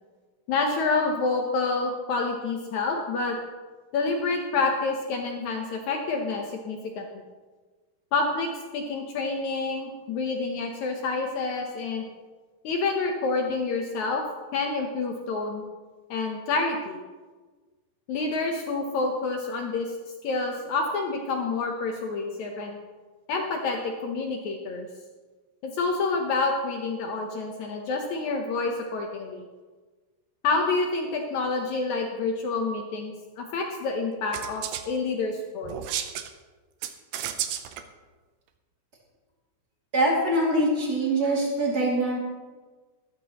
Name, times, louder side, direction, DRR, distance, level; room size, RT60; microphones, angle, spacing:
voice 1, 0.5-3.4 3.9-7.1 8.1-12.0 12.6-14.2 14.5-15.6 16.1-17.0 18.1-20.0 20.2-22.8 23.3-24.9 25.6-29.4 30.4-35.8, left 3 dB, 80° left, 2 dB, 1.7 m, -28 dB
sound 1, 34.3-34.8 35.6-36.3 36.8-37.8, right 10 dB, 75° right, 2.0 m, -32 dB
voice 2, 39.9-42.2, right 1 dB, 25° right, -4 dB, 2.5 m, -23 dB
14.0 x 13.5 x 3.0 m, 1.4 s
omnidirectional pair, 4.6 m